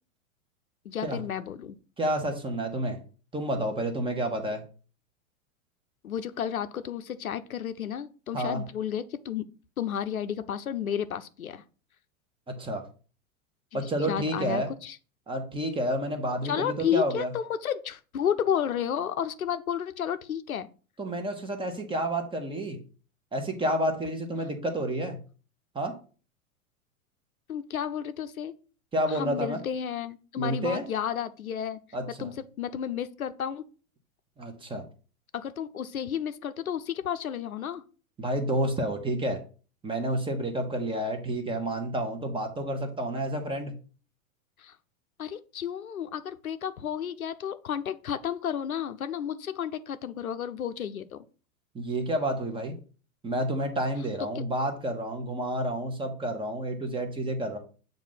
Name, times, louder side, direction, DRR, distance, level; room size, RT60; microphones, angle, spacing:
voice 1, 0.8-1.8 6.0-9.4 9.8-11.6 13.7-13.8 14.1-15.0 16.4-20.7 27.5-28.5 29.1-31.8 32.2-33.6 35.3-37.8 44.6-44.8 45.2-51.2 54.3-54.4, left 9 dB, 80° left, 12 dB, 0.6 m, -32 dB
voice 2, 2.0-3.0 3.3-4.6 8.3-8.6 12.5-12.8 13.7-14.7 15.3-17.3 21.0-22.8 23.3-25.2 25.7-25.9 28.9-29.6 30.4-30.8 31.9-32.3 34.4-34.8 38.2-39.4 39.8-43.8 51.7-52.8 53.2-57.6, right 1 dB, 10° right, 5 dB, 1.1 m, -30 dB
7.2 x 2.7 x 5.6 m, 0.38 s
figure-of-eight pair, 95°, 42 cm